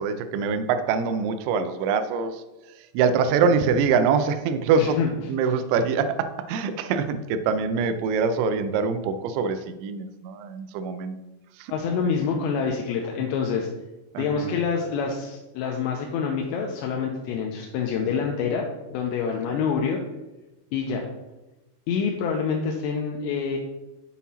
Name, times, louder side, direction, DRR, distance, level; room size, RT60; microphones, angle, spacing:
voice 1, 0.0-2.4 2.8-5.0 5.3-11.2 11.6-11.7 14.1-14.5, right 5 dB, 85° right, 10 dB, 2.9 m, -24 dB
voice 2, 4.8-5.1 11.7-13.7 14.2-20.0 20.7-21.1 21.9-23.6, left 6 dB, 85° left, 1 dB, 2.8 m, -26 dB
7.2 x 5.8 x 4.2 m, 1.0 s
omnidirectional pair, 5.1 m